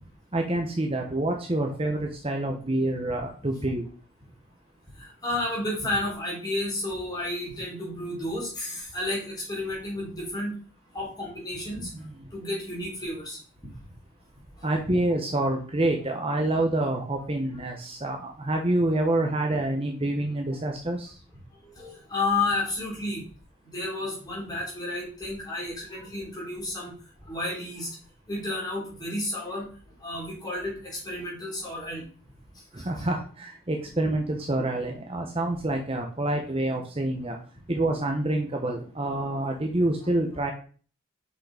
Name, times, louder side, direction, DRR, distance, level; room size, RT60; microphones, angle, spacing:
voice 1, 0.3-3.8 14.6-21.2 32.7-37.4 37.7-40.5, right 1 dB, 25° right, 2 dB, 0.9 m, -27 dB
voice 2, 5.0-10.5 10.9-11.9 12.3-13.4 21.6-23.2 23.6-26.9 27.2-27.9 28.3-29.7 30.0-32.0 32.8-32.9, left 2 dB, 20° left, -4 dB, 3.7 m, -31 dB
6.4 x 5.6 x 4.9 m, 0.40 s
head